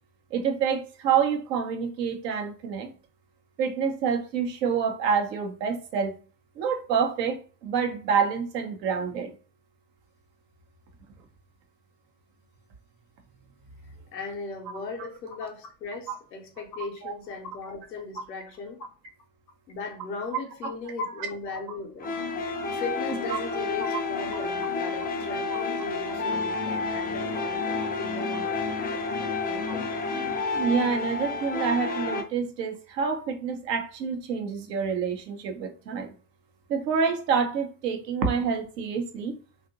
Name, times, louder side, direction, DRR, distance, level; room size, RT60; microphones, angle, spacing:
voice 1, 0.3-2.9 3.6-6.1 6.6-9.3 16.1-16.2 17.0-17.1 23.3-23.4 23.9-24.0 25.5-25.6 26.5-26.6 30.5-36.1 36.7-39.4, right 6 dB, 80° right, 0.7 m, -27 dB
voice 2, 14.1-18.9 19.7-22.2 22.7-30.0, left 4 dB, 90° left, 0.7 m, -37 dB
sound 1, 22.0-32.2, left 4 dB, 20° left, 0.3 m, -30 dB
2.8 x 2.5 x 2.4 m
hypercardioid pair, 60°, 49 cm